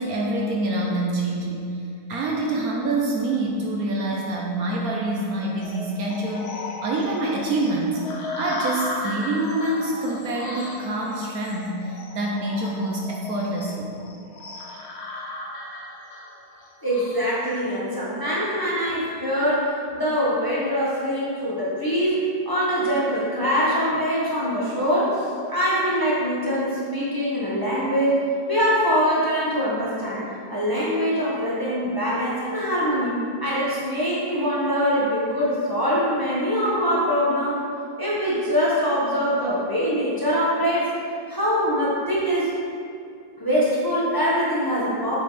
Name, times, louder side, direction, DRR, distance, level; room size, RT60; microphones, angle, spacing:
voice 1, 0.0-1.6 2.1-8.0 8.4-13.9, right 2 dB, 65° right, -2 dB, 1.1 m, -26 dB
sound 1, 5.6-18.6, left 2 dB, 50° left, 0.9 m, -36 dB
voice 2, 16.8-33.1 33.4-37.6 38.0-40.9 41.3-42.5 43.4-45.2, equal, 15° left, -8 dB, 1.3 m, -23 dB
7.3 x 5.3 x 4.1 m, 2.3 s
omnidirectional pair, 1.8 m